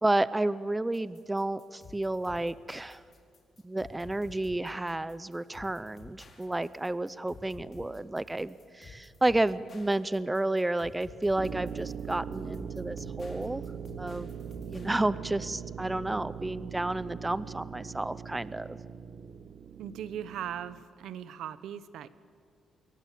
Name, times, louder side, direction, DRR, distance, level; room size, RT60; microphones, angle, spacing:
voice 1, 0.0-3.0 3.6-13.6 14.0-18.8, right 2 dB, 10° right, 17 dB, 0.6 m, -31 dB
sound 1, 0.9-14.9, left 3 dB, 40° left, 4.5 m, -52 dB
sound 2, 11.4-20.8, right 8 dB, 55° right, 1.1 m, -41 dB
voice 2, 19.8-22.1, right 9 dB, 85° right, 15 dB, 1.1 m, -39 dB
26.5 x 23.0 x 8.5 m, 2.3 s
cardioid pair, 120°, 0 cm